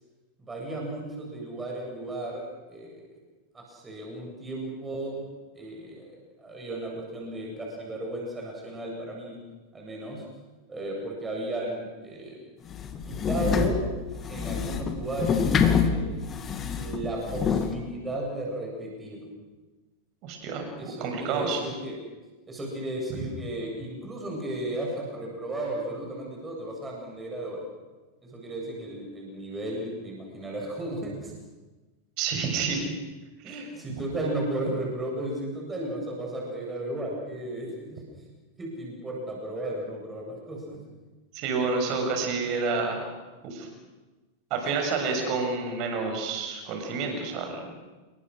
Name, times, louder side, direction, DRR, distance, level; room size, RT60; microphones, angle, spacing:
voice 1, 0.4-2.4 2.7-3.0 3.5-5.3 5.5-9.4 9.7-10.2 10.7-12.4 13.1-13.9 14.3-16.3 16.8-19.3 20.8-22.0 22.5-27.6 28.3-31.3 33.4-38.0 38.6-40.8, right 1 dB, 15° right, -1 dB, 7.5 m, -34 dB
sound 1, 12.7-17.7, left 6 dB, 25° left, 2.4 m, -26 dB
voice 2, 20.2-21.6 32.2-32.8 33.4-33.7 41.3-43.0 43.4-43.7 44.5-47.6, right 4 dB, 40° right, 4 dB, 6.9 m, -29 dB
28.5 x 23.0 x 6.5 m, 1.2 s
figure-of-eight pair, 90°, 0 cm